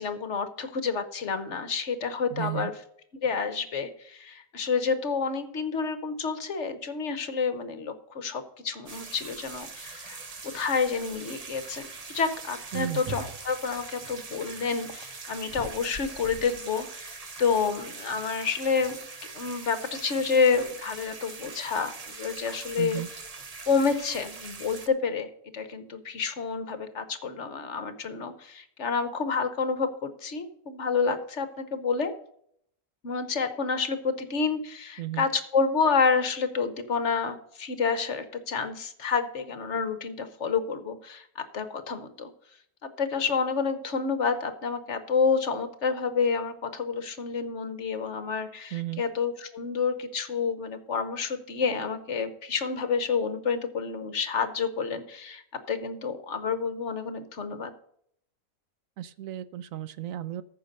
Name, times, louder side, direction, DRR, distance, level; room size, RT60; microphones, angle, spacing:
voice 1, 0.0-2.7 3.2-10.2 10.5-11.8 12.1-19.0 19.3-21.9 22.2-23.0 23.7-32.1 33.0-42.3 43.0-55.4 55.7-57.7, left 5 dB, 55° left, 10 dB, 1.2 m, -29 dB
voice 2, 2.3-2.7 12.7-13.0 22.8-23.1 35.0-35.3 48.7-49.0 59.0-60.4, right 13 dB, 70° right, 15 dB, 0.9 m, -34 dB
sound 1, 8.9-24.9, right 4 dB, 30° right, 0.7 m, -42 dB
14.5 x 5.8 x 5.3 m, 0.67 s
omnidirectional pair, 1.7 m